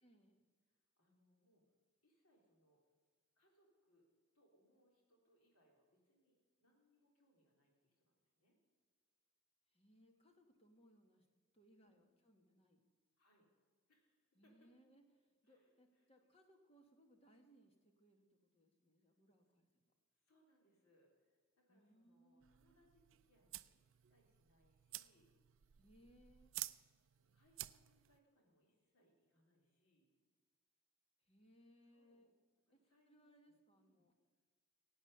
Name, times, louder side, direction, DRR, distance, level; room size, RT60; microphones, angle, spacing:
voice 1, 0.0-0.5 9.7-11.3 11.5-12.9 14.3-19.7 21.7-22.9 25.8-26.6 31.2-32.3 32.7-32.8 33.1-34.1, equal, 25° left, 4 dB, 1.6 m, -70 dB
voice 2, 0.7-1.6 2.0-2.8 3.4-4.0 4.3-8.6 11.8-12.0 13.2-13.5 13.9-14.7 15.4-16.1 20.1-25.3 27.1-30.1 31.9-32.3 32.7-34.0, equal, 80° left, -1 dB, 3.6 m, -77 dB
sound 1, 22.4-28.2, right 17 dB, 60° right, 0.4 m, -53 dB
16.5 x 8.7 x 6.8 m, 1.5 s
head